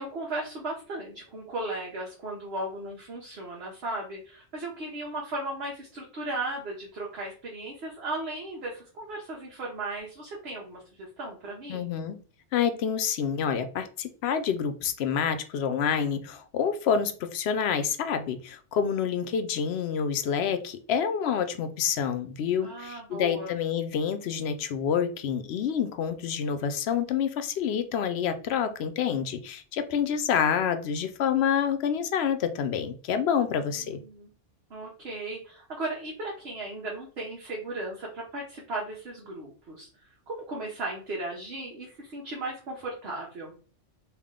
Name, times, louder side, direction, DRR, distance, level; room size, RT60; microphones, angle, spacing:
voice 1, 0.0-11.9 22.6-23.5 33.5-34.3 34.7-43.5, right 2 dB, 60° right, -2 dB, 1.1 m, -36 dB
voice 2, 11.7-12.2 12.5-34.0, left 7 dB, 70° left, 10 dB, 0.8 m, -28 dB
3.5 x 2.5 x 3.6 m, 0.41 s
omnidirectional pair, 1.2 m